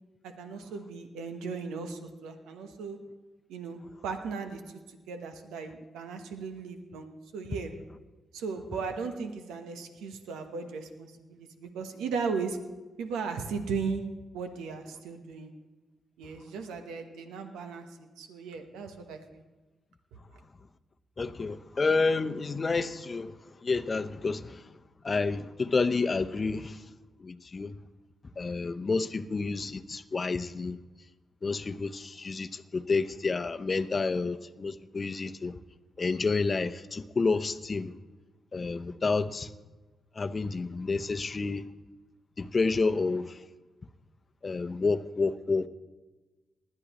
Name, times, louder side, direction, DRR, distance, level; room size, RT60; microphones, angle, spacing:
voice 1, 0.2-3.0 3.5-4.6 5.1-7.7 8.3-12.6 13.0-14.0 14.3-15.5 16.2-17.9 18.2-19.4, right 5 dB, 85° right, 1.0 m, -36 dB
voice 2, 21.2-23.3 23.6-24.6 25.0-26.8 27.2-27.8 28.4-30.8 31.4-35.5 36.0-37.9 38.5-39.5 40.2-41.7 42.4-43.4 44.4-45.7, left 4 dB, 40° left, 0.7 m, -29 dB
19.5 x 11.5 x 3.0 m
supercardioid pair, 50°, 0 cm